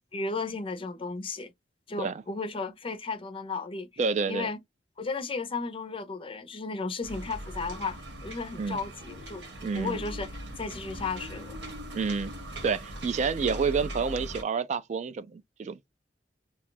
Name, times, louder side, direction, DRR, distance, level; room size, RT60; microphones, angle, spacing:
voice 1, 0.1-1.5 1.9-3.9 4.3-4.6 5.0-9.4 9.7-10.3 10.6-11.6, left 4 dB, 30° left, 0.5 m, -34 dB
voice 2, 4.0-4.5 8.6-8.8 9.6-10.0 11.9-12.3 12.6-15.8, right 5 dB, 40° right, 0.3 m, -29 dB
sound 1, 7.0-14.4, equal, 75° right, 1.1 m, -40 dB
2.7 x 2.3 x 3.7 m
head